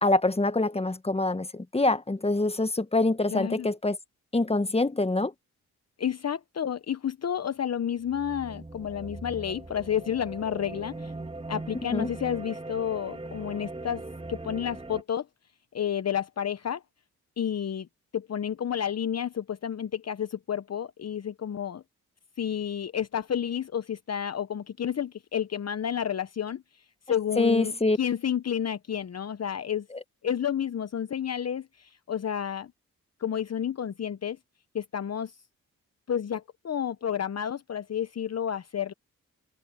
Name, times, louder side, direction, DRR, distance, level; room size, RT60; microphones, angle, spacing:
voice 1, 0.0-4.0 4.3-5.3 11.9-12.1 27.4-28.0, left 2 dB, 15° left, 1.5 m, -25 dB
voice 2, 3.3-3.7 6.0-11.1 11.5-14.0 14.3-15.3 15.7-16.8 17.4-17.9 18.1-21.8 22.4-29.9 30.2-32.7 33.2-34.4 34.7-35.4 36.1-38.9, left 9 dB, 45° left, 0.9 m, -30 dB
sound 1, 8.0-15.0, right 2 dB, 15° right, 2.1 m, -40 dB
supercardioid pair, 50°, 35 cm